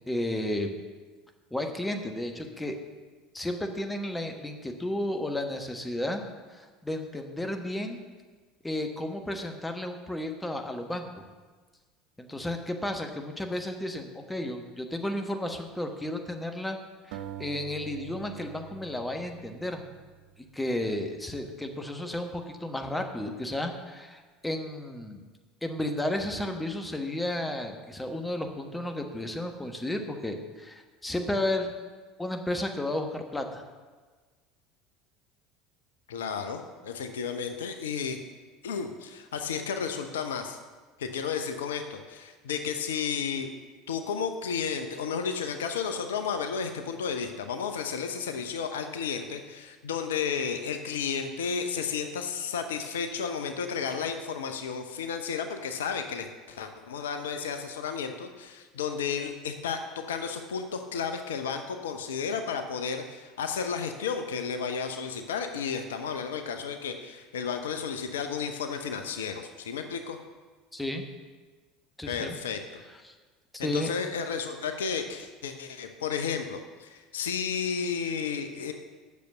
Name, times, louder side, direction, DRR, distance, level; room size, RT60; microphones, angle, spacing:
voice 1, 0.1-0.8 1.5-2.8 3.3-6.2 6.5-8.0 8.6-11.2 12.2-16.8 17.1-19.9 20.5-25.2 25.6-31.7 32.2-33.6 70.7-71.0 72.0-72.3 73.0-73.1 73.5-73.9, left 1 dB, 10° left, 4 dB, 1.3 m, -33 dB
sound 1, 17.1-20.3, right 11 dB, 65° right, 0.6 m, -44 dB
voice 2, 36.1-38.2 38.6-40.6 41.0-43.5 43.9-70.2 72.1-72.8 73.6-78.7, left 6 dB, 75° left, 7 dB, 0.7 m, -32 dB
8.4 x 6.7 x 6.8 m, 1.4 s
figure-of-eight pair, 70°, 0 cm